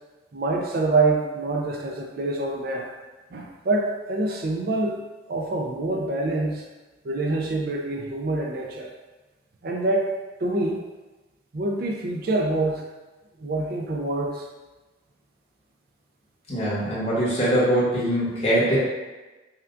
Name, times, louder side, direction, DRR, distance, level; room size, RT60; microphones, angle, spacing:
voice 1, 0.3-2.9 3.3-5.0 5.3-6.7 7.0-8.9 9.6-10.1 10.4-10.8 11.5-12.9 13.4-14.5, right 2 dB, 55° right, 1 dB, 0.4 m, -26 dB
voice 2, 16.5-18.8, equal, 35° left, -8 dB, 1.2 m, -22 dB
5.5 x 2.3 x 2.5 m, 1.2 s
head